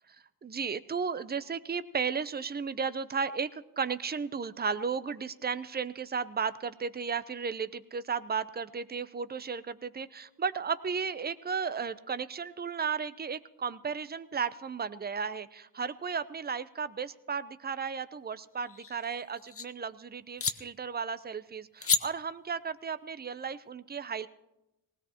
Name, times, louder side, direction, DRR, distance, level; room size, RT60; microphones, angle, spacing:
voice 1, 0.4-24.3, right 6 dB, 25° right, 13 dB, 0.6 m, -34 dB
sound 1, 18.5-19.7 20.4-20.6 21.8-22.0, left 6 dB, 35° left, 0.7 m, -31 dB
19.5 x 16.5 x 2.9 m, 0.91 s
cardioid pair, 60°, 40 cm